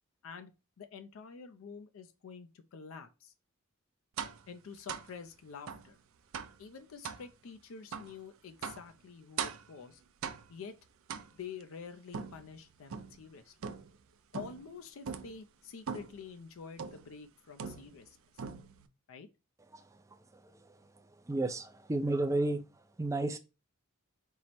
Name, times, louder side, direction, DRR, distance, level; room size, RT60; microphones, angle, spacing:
voice 1, 0.8-3.3 4.5-6.0 6.6-10.0 10.5-10.8 11.3-13.5 14.3-18.2 19.1-19.3, left 6 dB, 70° left, 0.4 m, -48 dB
sound 1, 4.2-4.5 4.9-5.1 5.7-5.9 6.3-6.6 7.0-7.3 7.9-8.1 8.6-8.9 9.4-9.7 10.2-10.6 11.1-11.6 12.1-13.2 13.6-14.0 14.3-14.7 15.0-15.4 15.9-16.2 16.8-17.1 17.6-18.1 18.4-18.9, right 6 dB, 75° right, 0.4 m, -41 dB
voice 2, 21.3-22.6 23.0-23.4, right 2 dB, 15° right, 0.4 m, -31 dB
4.5 x 2.0 x 4.1 m
head